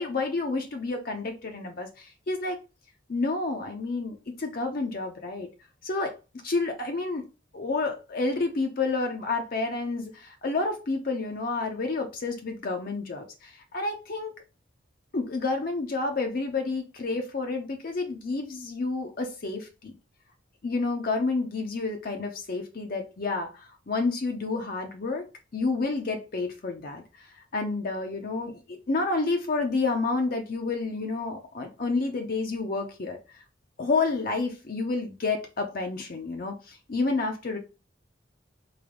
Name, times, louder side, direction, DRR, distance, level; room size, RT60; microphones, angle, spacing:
voice 1, 0.0-2.6 3.1-5.5 5.8-6.1 6.4-7.3 7.5-14.3 15.1-19.9 20.6-25.3 25.5-27.0 27.5-33.2 33.8-37.6, left 3 dB, 45° left, 0.5 m, -29 dB
3.3 x 2.6 x 3.7 m
head